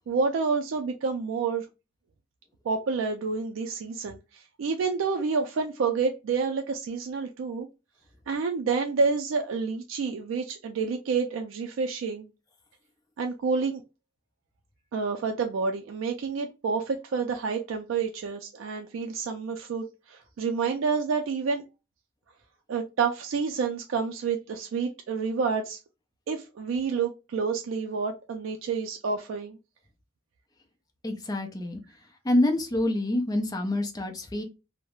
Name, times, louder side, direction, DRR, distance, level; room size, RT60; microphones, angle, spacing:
voice 1, 0.1-1.7 2.7-7.7 8.3-12.3 13.2-13.8 14.9-21.6 22.7-25.8 26.3-29.6, right 5 dB, 75° right, 0.3 m, -29 dB
voice 2, 31.0-31.8 32.2-34.4, left 1 dB, 20° left, 0.4 m, -26 dB
2.3 x 2.0 x 3.0 m
head